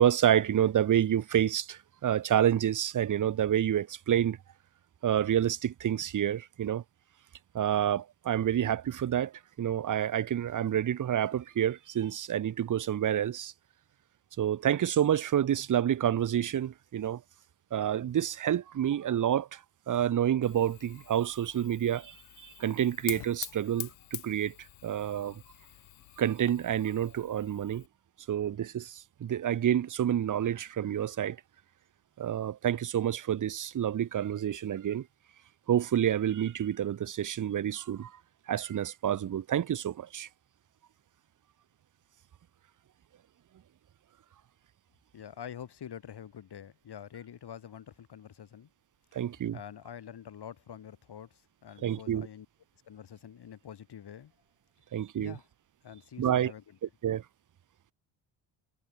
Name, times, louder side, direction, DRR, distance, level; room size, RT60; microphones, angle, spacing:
voice 1, 0.0-4.4 5.0-6.8 7.5-9.3 9.6-13.5 14.4-17.2 17.7-19.6 19.9-24.5 24.8-25.4 26.2-27.8 28.3-31.4 32.2-35.1 35.7-38.1 38.5-40.3 49.1-49.6 51.8-52.3 54.9-55.3 56.2-56.5 57.0-57.2, right 10 dB, 40° right, 0.9 m, -28 dB
Fire, 20.4-27.9, left 21 dB, 85° left, 1.5 m, -46 dB
voice 2, 45.1-48.7 49.5-52.5 52.8-54.3 55.2-55.4 55.8-56.8, left 9 dB, 60° left, 6.9 m, -46 dB
supercardioid pair, 65°, 45 cm